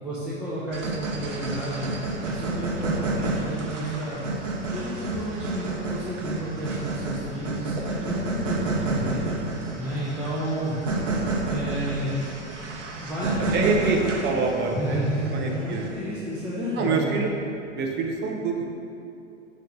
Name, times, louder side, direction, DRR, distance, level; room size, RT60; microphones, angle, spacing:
voice 1, 0.0-1.9 2.2-4.2 4.7-9.3 9.8-10.8 11.5-12.2 13.0-14.0 14.8-17.2, equal, 5° right, -11 dB, 1.1 m, -31 dB
sound 1, 0.7-16.1, right 2 dB, 80° right, 1.0 m, -30 dB
voice 2, 13.5-15.0 15.3-16.2 16.8-17.3 17.7-18.7, right 4 dB, 30° right, 1 dB, 0.9 m, -26 dB
6.7 x 3.2 x 5.3 m, 2.6 s
hypercardioid pair, 105°, 36 cm